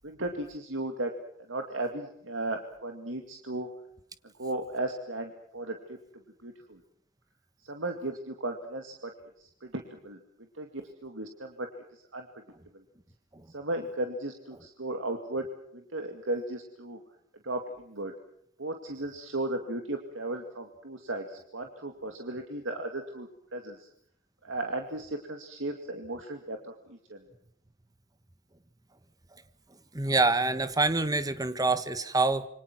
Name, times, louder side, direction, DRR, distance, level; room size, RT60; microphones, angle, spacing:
voice 1, 0.0-1.1 1.5-3.7 4.4-6.0 6.4-6.8 7.6-9.1 9.4-10.2 10.6-12.3 13.5-15.4 15.7-17.0 17.4-18.1 18.6-23.9 24.4-26.6 26.9-27.2, right 2 dB, 80° right, 5 dB, 2.3 m, -35 dB
voice 2, 29.9-32.5, right 3 dB, 20° right, 12 dB, 1.3 m, -26 dB
27.5 x 24.5 x 6.1 m, 0.69 s
head